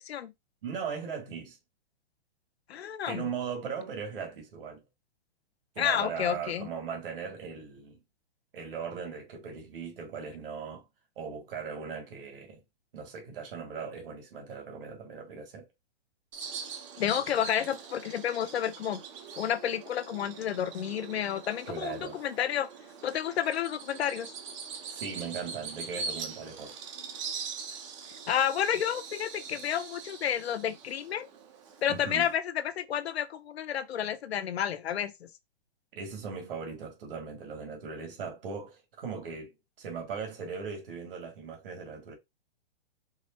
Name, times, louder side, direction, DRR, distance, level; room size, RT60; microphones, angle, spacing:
voice 1, 0.6-1.6 3.1-4.8 5.8-8.0 8.5-10.8 11.2-12.6 12.9-15.7 21.7-22.2 24.9-26.8 31.9-32.3 35.9-42.1, right 6 dB, 60° right, 1.9 m, -38 dB
voice 2, 2.7-3.3 5.8-6.7 17.0-19.0 19.4-22.7 23.0-24.3 28.3-31.3 31.8-35.3, left 9 dB, 85° left, 0.7 m, -30 dB
Bird vocalization bird call bird song, 16.3-32.4, right 5 dB, 30° right, 0.8 m, -43 dB
4.9 x 2.0 x 4.2 m
hypercardioid pair, 165°, 31 cm